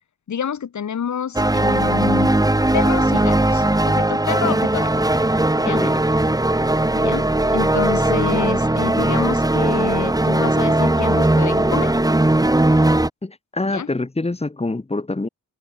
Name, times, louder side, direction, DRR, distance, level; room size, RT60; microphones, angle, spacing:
voice 1, 0.3-2.3 2.7-4.9 5.6-5.8 6.9-7.3 7.5-11.9 13.7-13.9, left 8 dB, 70° left, 3.4 m, -27 dB
sound 1, 1.3-13.1, right 1 dB, 10° right, 3.6 m, -18 dB
voice 2, 5.0-5.3 5.6-6.0 13.2-15.3, left 2 dB, 20° left, 3.3 m, -26 dB
open air
wide cardioid pair, 110°, 30 cm